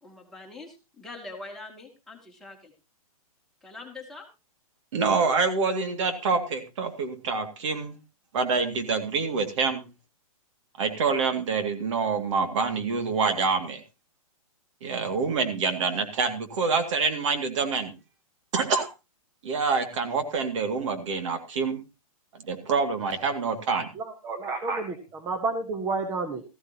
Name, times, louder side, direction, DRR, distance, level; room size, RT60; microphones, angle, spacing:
voice 1, 0.0-2.7 3.6-4.3, left 3 dB, ahead, -2 dB, 2.3 m, -43 dB
voice 2, 4.9-8.0 8.3-9.9 10.8-13.8 14.8-17.9 18.5-18.9 19.4-21.8 22.5-23.9, right 4 dB, 55° right, 7 dB, 2.3 m, -26 dB
voice 3, 23.9-26.4, right 3 dB, 15° right, 7 dB, 1.2 m, -30 dB
14.5 x 14.5 x 2.9 m, 0.27 s
hypercardioid pair, 155°, 19 cm